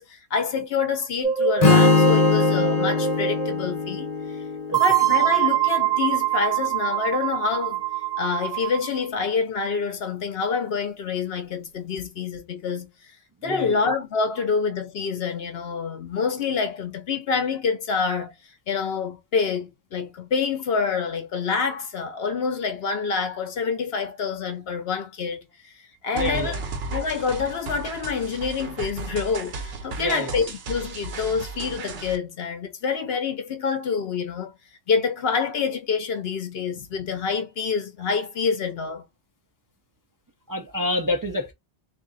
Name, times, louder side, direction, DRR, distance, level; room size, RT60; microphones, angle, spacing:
voice 1, 0.0-4.4 4.8-7.8 8.2-13.2 13.4-18.3 18.7-26.6 26.9-34.5 34.9-39.0, left 5 dB, 70° left, 0.9 m, -27 dB
sound 1, 1.2-3.5 4.7-9.0, right 10 dB, 5° right, 1.0 m, -24 dB
Strum, 1.6-5.8, left 4 dB, 40° left, 0.9 m, -21 dB
voice 2, 13.4-13.8 26.1-26.6 30.0-30.3 40.5-41.5, left 1 dB, 25° right, 0.5 m, -27 dB
sound 2, 26.2-32.2, right 3 dB, 70° right, 1.0 m, -34 dB
3.6 x 2.6 x 3.9 m
omnidirectional pair, 1.1 m